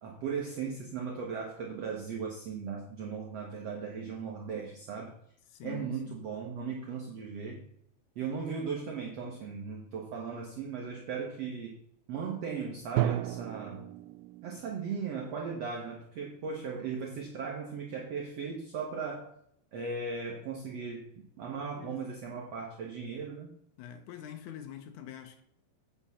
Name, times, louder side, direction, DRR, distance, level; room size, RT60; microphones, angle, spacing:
voice 1, 0.0-5.1 5.6-7.7 8.1-11.8 12.1-13.8 14.4-19.3 19.7-23.5, right 5 dB, 70° right, 1.5 m, -37 dB
voice 2, 5.5-6.2 21.8-22.1 23.8-25.4, left 10 dB, 75° left, 1.8 m, -45 dB
Drum, 13.0-14.9, right 12 dB, 90° right, 2.7 m, -33 dB
8.9 x 6.1 x 5.7 m
omnidirectional pair, 4.7 m